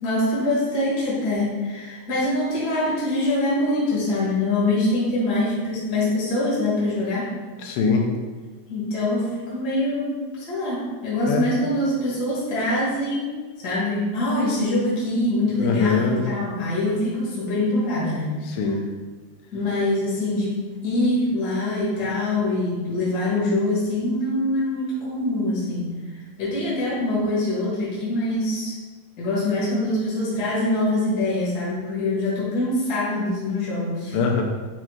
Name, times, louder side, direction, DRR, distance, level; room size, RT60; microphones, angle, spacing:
voice 1, 0.0-7.3 8.7-13.3 13.6-18.3 19.5-20.6 20.8-25.9 26.4-28.7 29.2-34.1, left 1 dB, 65° left, -8 dB, 0.9 m, -24 dB
voice 2, 7.6-8.1 11.3-11.5 15.6-16.3 18.4-18.9 34.1-34.4, left 5 dB, 85° left, 2 dB, 2.8 m, -22 dB
8.7 x 4.5 x 2.4 m, 1.4 s
omnidirectional pair, 4.9 m